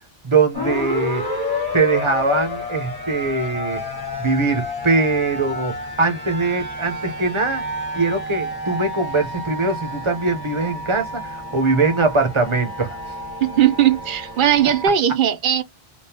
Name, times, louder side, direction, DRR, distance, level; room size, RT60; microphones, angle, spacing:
voice 1, 0.2-1.2 1.7-3.8 4.2-7.6 7.9-13.1, right 3 dB, 30° right, 0.8 m, -21 dB
sound 1, 0.5-14.9, left 1 dB, 20° left, 1.5 m, -30 dB
voice 2, 13.4-15.6, right 10 dB, 60° right, 0.7 m, -18 dB
3.6 x 2.4 x 2.8 m
omnidirectional pair, 1.0 m